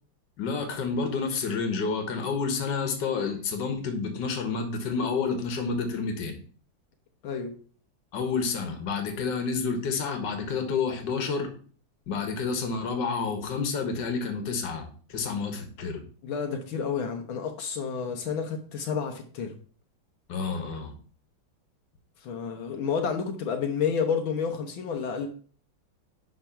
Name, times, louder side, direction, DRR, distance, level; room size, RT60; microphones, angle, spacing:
voice 1, 0.4-6.4 8.1-11.5 12.1-16.0 20.3-20.9, left 5 dB, 65° left, 6 dB, 1.9 m, -29 dB
voice 2, 7.2-7.6 16.2-19.6 22.2-25.3, left 6 dB, 85° left, 4 dB, 1.8 m, -30 dB
10.0 x 3.7 x 5.7 m, 0.43 s
omnidirectional pair, 2.1 m